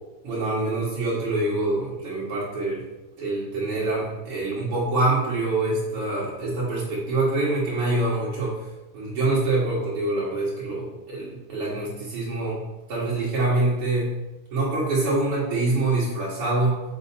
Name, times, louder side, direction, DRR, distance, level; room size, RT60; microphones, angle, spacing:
voice 1, 0.2-2.8 3.2-8.6 8.9-12.6 12.9-14.1 14.5-16.8, right 2 dB, 80° right, -7 dB, 1.2 m, -25 dB
6.5 x 5.0 x 4.2 m, 1.0 s
omnidirectional pair, 5.2 m